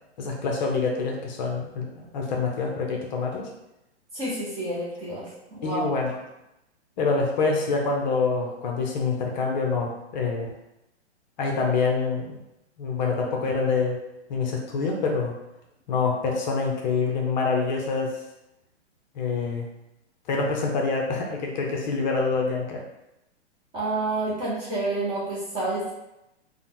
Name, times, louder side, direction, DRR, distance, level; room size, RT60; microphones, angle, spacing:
voice 1, 0.2-3.5 5.6-6.2 7.0-10.5 11.4-12.4 12.8-14.0 14.3-15.4 15.9-18.2 19.1-19.7 20.3-22.8, left 4 dB, 40° left, 0 dB, 0.6 m, -26 dB
voice 2, 4.1-5.2 5.5-5.9 23.7-25.9, right 2 dB, 15° right, -7 dB, 0.5 m, -29 dB
3.5 x 2.0 x 2.8 m, 0.90 s
hypercardioid pair, 140°, 35 cm